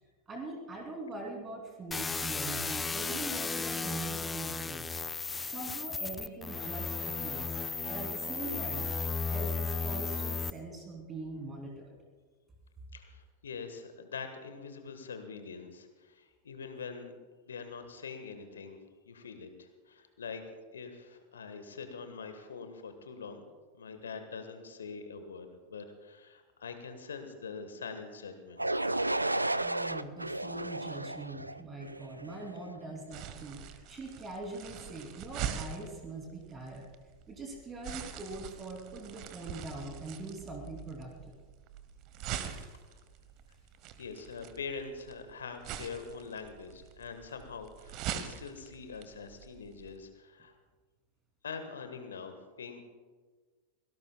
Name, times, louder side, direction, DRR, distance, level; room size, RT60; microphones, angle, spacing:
voice 1, 0.3-5.0 5.4-7.6 7.9-8.9 9.3-12.0 29.5-36.9 37.3-41.3 42.4-42.7, right 2 dB, 20° right, 1 dB, 3.0 m, -42 dB
sound 1, 1.9-10.5, left 4 dB, 15° left, 0.5 m, -35 dB
voice 2, 12.9-17.1 17.5-18.8 19.1-20.4 20.7-23.4 23.8-28.8 44.0-50.5 51.4-52.8, left 5 dB, 70° left, 8 dB, 1.4 m, -44 dB
sound 2, 28.6-32.5, right 2 dB, 85° right, 0.4 m, -33 dB
sound 3, 33.1-49.9, right 9 dB, 40° right, 1.1 m, -43 dB
25.0 x 18.0 x 2.3 m, 1.4 s
figure-of-eight pair, 90°, 0 cm